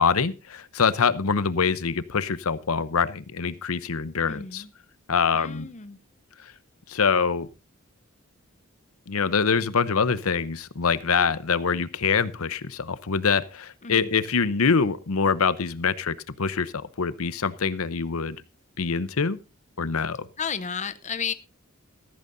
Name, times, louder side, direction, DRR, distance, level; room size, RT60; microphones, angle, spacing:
voice 1, 0.0-4.6 5.1-5.7 6.9-7.5 9.1-16.7 17.0-18.4 18.8-19.4 19.8-20.3, left 5 dB, 85° left, 16 dB, 0.8 m, -24 dB
voice 2, 4.3-4.7 5.3-6.0 13.8-14.1 20.4-21.3, left 6 dB, 35° left, 13 dB, 0.7 m, -32 dB
14.5 x 14.0 x 2.7 m, 0.30 s
head